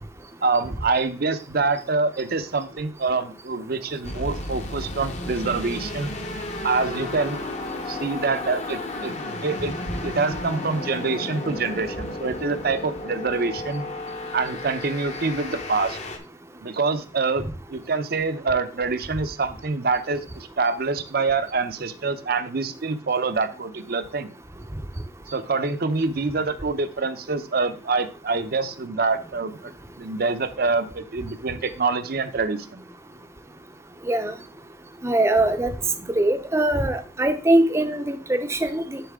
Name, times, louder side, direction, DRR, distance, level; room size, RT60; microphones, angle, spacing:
voice 1, 0.4-6.1 6.6-7.4 7.9-9.1 9.4-9.7 10.0-13.8 14.3-16.0 16.6-24.3 25.3-29.7 30.0-32.8, right 4 dB, 55° right, 11 dB, 0.7 m, -26 dB
sound 1, 4.0-16.2, left 2 dB, 40° left, 1.0 m, -33 dB
voice 2, 35.0-35.7 36.2-39.0, right 1 dB, 15° right, 8 dB, 0.6 m, -22 dB
10.0 x 4.1 x 3.6 m, 0.37 s
head